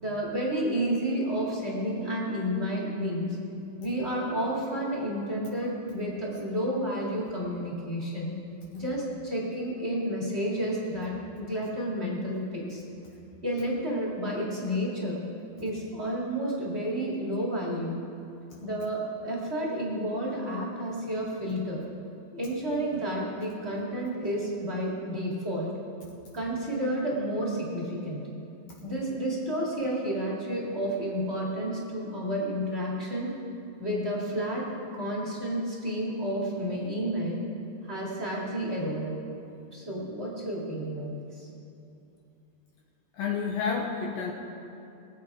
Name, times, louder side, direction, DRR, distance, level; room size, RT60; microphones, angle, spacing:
voice 1, 0.0-3.4 3.8-8.4 8.7-12.8 13.4-15.3 15.6-18.0 18.6-21.8 22.3-25.7 26.3-28.2 28.8-33.3 33.8-34.6 34.9-37.4 37.8-39.2 39.7-41.5, equal, 30° right, -4 dB, 1.2 m, -31 dB
voice 2, 43.1-44.3, left 6 dB, 70° left, -1 dB, 2.4 m, -29 dB
22.0 x 8.5 x 4.8 m, 2.7 s
omnidirectional pair, 4.9 m